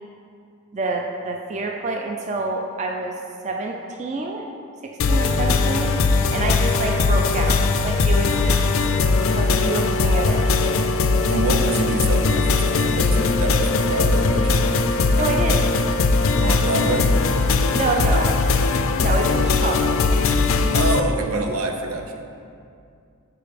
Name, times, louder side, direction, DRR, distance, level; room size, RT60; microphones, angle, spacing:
voice 1, 0.7-3.1 3.4-4.5 5.1-5.9 6.3-8.6 9.3-10.8 15.2-15.6 17.7-18.3 19.0-20.0, right 3 dB, 30° right, 1 dB, 0.3 m, -27 dB
sound 1, 5.0-21.0, left 3 dB, 65° left, 0.3 m, -20 dB
voice 2, 11.3-14.7 16.4-17.1 20.7-22.2, right 2 dB, 75° right, 4 dB, 0.6 m, -26 dB
4.9 x 4.8 x 5.0 m, 2.4 s
head